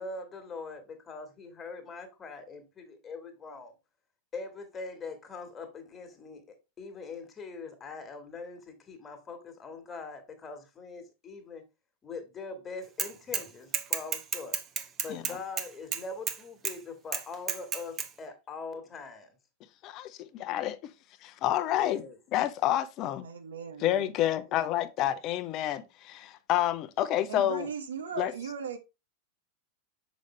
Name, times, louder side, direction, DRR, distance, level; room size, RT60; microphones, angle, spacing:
voice 1, 0.0-3.7 4.3-11.6 12.0-14.6 15.0-19.3 21.7-22.2, left 4 dB, 20° left, 1.8 m, -42 dB
Bicycle / Mechanisms, 13.0-13.5 13.7-16.4 16.6-16.7 17.1-18.1, right 7 dB, 30° right, 0.8 m, -31 dB
voice 2, 19.8-20.9 21.2-22.0 22.3-23.3 23.8-27.7 28.2-28.3, left 12 dB, 35° left, 0.7 m, -29 dB
voice 3, 23.2-24.1 27.3-28.8, right 6 dB, 65° right, 0.8 m, -38 dB
6.4 x 5.1 x 3.2 m
figure-of-eight pair, 90°, 0 cm